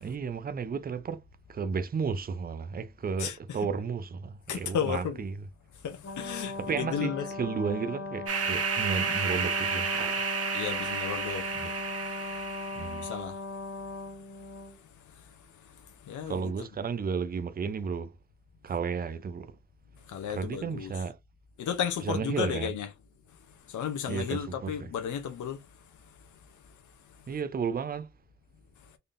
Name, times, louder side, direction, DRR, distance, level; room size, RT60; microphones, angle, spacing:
voice 1, 0.0-1.2 1.5-5.4 6.6-10.2 11.6-11.7 12.7-13.1 16.3-18.1 18.6-19.6 20.3-21.2 22.0-22.7 24.1-24.9 27.3-28.1, right 5 dB, 30° right, 0.4 m, -33 dB
voice 2, 3.2-3.6 4.5-5.2 5.8-7.3 10.5-11.5 13.0-13.4 16.1-16.5 20.1-20.9 21.6-22.9 23.7-25.6, left 8 dB, 85° left, 0.7 m, -33 dB
Brass instrument, 6.0-14.7, left 3 dB, 55° left, 1.5 m, -38 dB
sound 1, 8.3-13.0, right 6 dB, 55° right, 0.9 m, -31 dB
3.9 x 3.4 x 2.5 m
wide cardioid pair, 165°, 29 cm